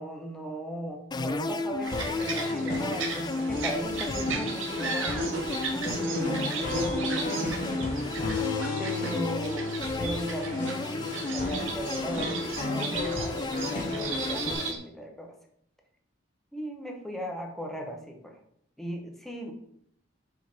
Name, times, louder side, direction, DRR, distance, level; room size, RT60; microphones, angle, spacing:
voice 1, 0.0-5.3 5.7-7.9 8.8-9.7 10.0-15.4 16.5-18.4 18.8-19.5, equal, ahead, 2 dB, 1.0 m, -38 dB
sound 1, 1.1-14.7, left 3 dB, 20° left, 0.3 m, -34 dB
sound 2, 1.8-14.8, right 3 dB, 90° right, 1.1 m, -35 dB
sound 3, 1.9-14.5, left 3 dB, 45° left, 1.3 m, -35 dB
6.3 x 4.5 x 3.8 m, 0.68 s
head